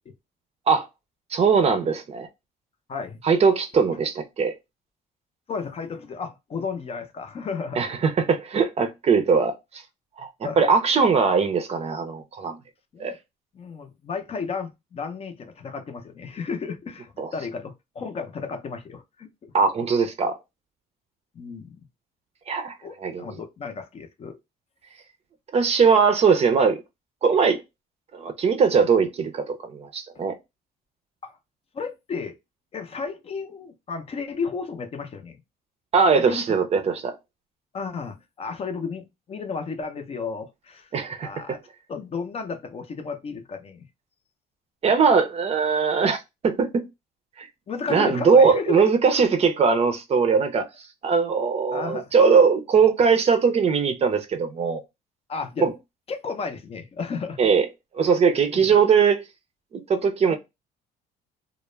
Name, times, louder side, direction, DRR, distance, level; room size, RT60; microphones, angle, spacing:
voice 1, 1.3-2.3 3.2-4.5 7.8-9.5 10.2-12.6 13.0-13.1 17.2-17.3 19.5-20.4 22.5-22.7 23.0-23.3 25.5-26.8 27.2-27.6 28.1-30.3 35.9-37.2 40.9-41.6 44.8-46.8 47.4-47.5 47.9-50.7 51.0-54.8 55.6-55.7 57.4-57.7 57.9-59.2 59.7-60.4, right 5 dB, 40° right, 0.5 m, -20 dB
voice 2, 2.9-3.2 5.5-7.9 10.4-10.7 12.9-13.2 13.5-19.5 21.3-21.9 22.8-24.4 30.1-30.2 31.2-31.4 31.7-32.4 32.7-35.4 36.3-36.5 37.7-40.9 41.2-41.6 41.9-43.9 47.7-48.8 51.7-52.1 55.3-55.7 56.1-57.4 58.5-58.7 60.3-60.4, left 5 dB, 35° left, 0.5 m, -33 dB
2.2 x 2.0 x 3.1 m
cardioid pair, 110°, 17 cm